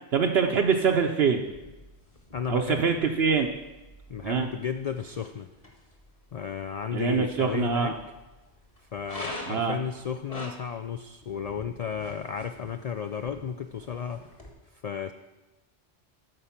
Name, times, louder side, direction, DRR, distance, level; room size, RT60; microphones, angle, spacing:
voice 1, 0.1-1.4 2.5-3.5 4.2-4.5 6.9-7.9 9.5-9.8, right 6 dB, 65° right, 3 dB, 0.9 m, -24 dB
sound 1, 1.4-14.5, left 1 dB, 30° left, 1.6 m, -46 dB
voice 2, 2.3-2.9 4.1-5.5 6.3-8.0 8.9-14.2 14.8-15.1, left 7 dB, 75° left, 8 dB, 0.3 m, -33 dB
13.5 x 4.9 x 5.8 m, 1.1 s
omnidirectional pair, 1.2 m